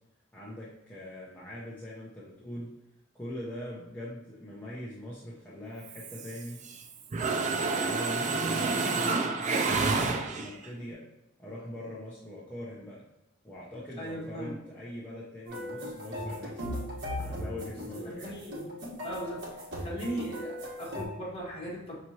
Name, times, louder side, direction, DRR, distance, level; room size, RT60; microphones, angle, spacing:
voice 1, 0.3-2.7 3.1-6.6 7.1-11.0 11.4-13.0 13.4-16.6 17.2-18.3, left 1 dB, 10° left, -8 dB, 0.7 m, -42 dB
Mechanisms, 5.9-6.8 7.1-10.7, right 4 dB, 35° right, 0.4 m, -29 dB
voice 2, 14.0-14.6 17.7-18.7 19.0-19.5 19.8-22.0, equal, 30° left, -5 dB, 1.5 m, -38 dB
sound 1, 15.5-21.0, equal, 60° right, 1.3 m, -38 dB
5.8 x 3.0 x 2.8 m, 0.91 s
head